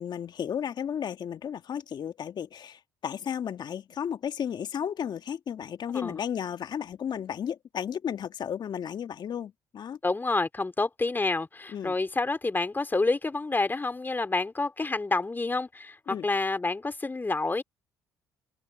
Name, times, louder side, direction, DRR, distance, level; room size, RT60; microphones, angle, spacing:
voice 1, 0.0-10.0 11.7-11.9 16.1-16.3, left 8 dB, 50° left, 1.7 m, -34 dB
voice 2, 10.0-17.6, left 3 dB, 20° left, 3.1 m, -28 dB
hypercardioid pair, 60°, 9 cm